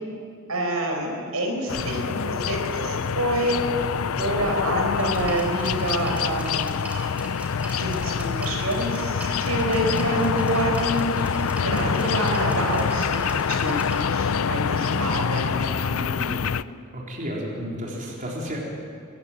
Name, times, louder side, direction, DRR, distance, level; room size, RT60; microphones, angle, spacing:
voice 1, 0.5-3.6 4.2-6.8 7.7-13.2 13.5-16.4, right 1 dB, 90° right, 2 dB, 5.0 m, -27 dB
sound 1, 1.7-16.6, left 6 dB, 70° left, 0.5 m, -26 dB
sound 2, 5.0-14.0, right 1 dB, 5° right, 3.6 m, -40 dB
voice 2, 11.3-11.7 14.8-15.1 16.9-18.6, equal, 40° right, -3 dB, 4.1 m, -33 dB
24.5 x 15.0 x 9.3 m, 2.3 s
head